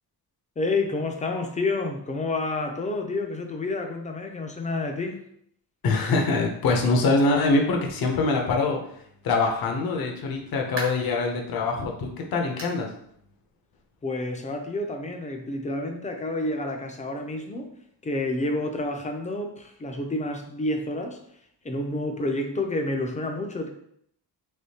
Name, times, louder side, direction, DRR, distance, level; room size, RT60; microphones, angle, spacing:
voice 1, 0.6-5.2 14.0-17.7 18.0-21.2 21.6-23.7, left 2 dB, 20° left, 4 dB, 0.4 m, -29 dB
voice 2, 5.8-8.8 9.2-12.9, left 3 dB, 60° left, 2 dB, 0.7 m, -24 dB
sound 1, 10.7-11.2 11.7-11.8 12.6-12.9 13.2-13.3 13.8-13.9 15.0-15.1, right 1 dB, 70° right, 1.2 m, -37 dB
3.5 x 3.1 x 2.8 m, 0.69 s
cardioid pair, 130°, 41 cm